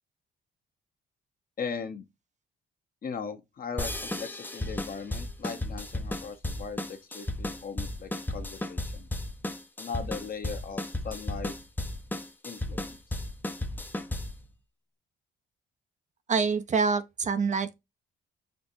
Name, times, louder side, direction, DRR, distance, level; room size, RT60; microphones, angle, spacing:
voice 1, 1.6-2.1 3.0-9.1 9.8-11.5 12.4-13.0, left 5 dB, 45° left, 1.0 m, -38 dB
sound 1, 3.8-14.4, left 1 dB, 10° left, 0.6 m, -34 dB
voice 2, 16.3-17.7, right 5 dB, 35° right, 0.6 m, -26 dB
6.5 x 2.5 x 2.7 m
cardioid pair, 90°, 20 cm